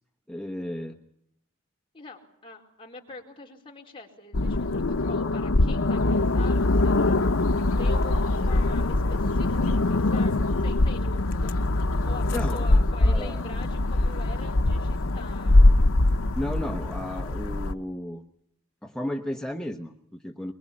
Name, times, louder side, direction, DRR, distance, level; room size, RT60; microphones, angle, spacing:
voice 1, 0.3-1.0 12.3-13.4 16.3-18.2 18.8-20.5, left 1 dB, 5° left, 3 dB, 1.1 m, -34 dB
voice 2, 1.9-7.2 7.8-10.4 10.6-11.7 12.1-15.6, left 2 dB, 25° left, 0 dB, 4.4 m, -44 dB
sound 1, 4.3-17.7, left 2 dB, 75° left, 0.9 m, -23 dB
23.0 x 22.5 x 8.6 m, 0.73 s
head